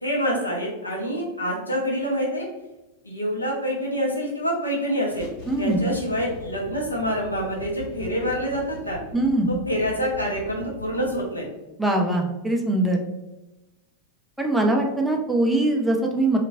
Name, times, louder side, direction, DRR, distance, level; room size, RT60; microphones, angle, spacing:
voice 1, 0.0-2.5 3.0-5.3 5.6-9.0 9.5-11.4, equal, 85° left, -3 dB, 0.7 m, -26 dB
sound 1, 5.1-11.2, left 2 dB, 40° left, 1.4 m, -41 dB
voice 2, 5.5-5.8 9.1-9.5 11.8-13.0 14.4-16.4, right 1 dB, 5° right, 1 dB, 0.4 m, -22 dB
2.9 x 2.4 x 2.6 m, 1.0 s
figure-of-eight pair, 90°, 0 cm